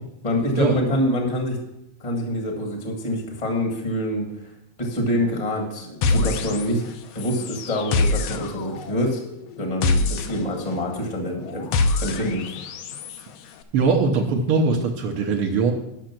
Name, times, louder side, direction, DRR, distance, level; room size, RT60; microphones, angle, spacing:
voice 1, 0.2-1.6 2.0-4.5 4.8-6.8 7.1-9.2 9.6-11.7 12.0-12.5, equal, 25° left, 2 dB, 0.9 m, -26 dB
sound 1, 6.0-6.9 7.2-13.2, left 3 dB, 75° left, 1.5 m, -25 dB
voice 2, 13.7-15.7, right 4 dB, 70° right, 4 dB, 1.4 m, -21 dB
10.5 x 6.4 x 5.9 m, 0.83 s
omnidirectional pair, 3.5 m